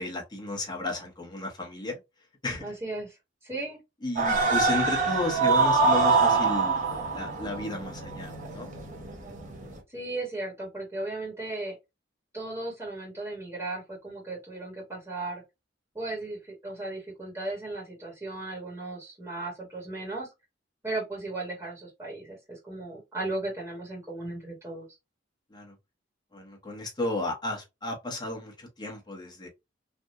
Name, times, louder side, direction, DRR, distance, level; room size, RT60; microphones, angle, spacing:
voice 1, 0.0-2.0 2.4-2.7 4.0-6.8 7.1-8.8 25.5-25.7 26.3-29.5, left 2 dB, 25° left, 1.2 m, -33 dB
voice 2, 2.6-3.8 9.9-11.7 12.3-15.4 15.9-20.3 20.8-24.9, right 2 dB, 15° right, 1.4 m, -36 dB
sound 1, 4.2-9.8, right 4 dB, 40° right, 1.1 m, -25 dB
3.4 x 2.6 x 2.6 m
head